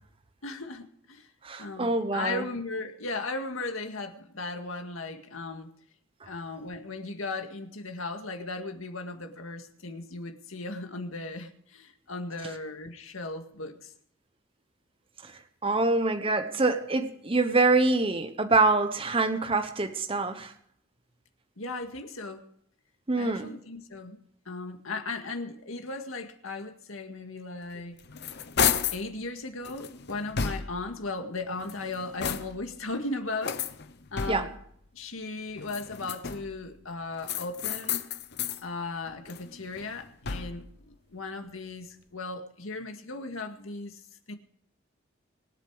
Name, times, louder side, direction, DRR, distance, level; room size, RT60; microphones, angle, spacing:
voice 1, 0.4-1.3 1.6-5.7 6.2-13.9 21.6-22.5 23.2-24.2 24.5-28.0 28.9-33.6 34.1-34.5 34.9-38.0 38.6-44.0 44.3-44.4, left 3 dB, 85° left, 2.0 m, -37 dB
voice 2, 1.4-2.4 15.6-20.5 23.1-23.5 34.3-34.5, right 3 dB, 25° right, 1.0 m, -25 dB
sound 1, 27.7-29.1 29.6-30.9 31.5-32.7 33.4-34.7 35.6-36.6 37.2-38.6 39.1-40.7, left 7 dB, 55° left, 0.8 m, -32 dB
25.0 x 8.4 x 4.9 m
head